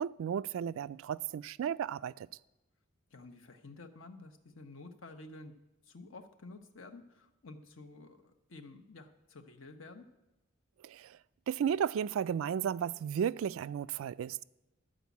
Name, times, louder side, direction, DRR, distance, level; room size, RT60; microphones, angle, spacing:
voice 1, 0.0-2.3 10.8-11.2 11.5-14.4, right 8 dB, 75° right, 0.3 m, -34 dB
voice 2, 3.1-5.5 5.8-10.1, left 2 dB, 70° left, 1.0 m, -51 dB
12.5 x 5.0 x 8.2 m
head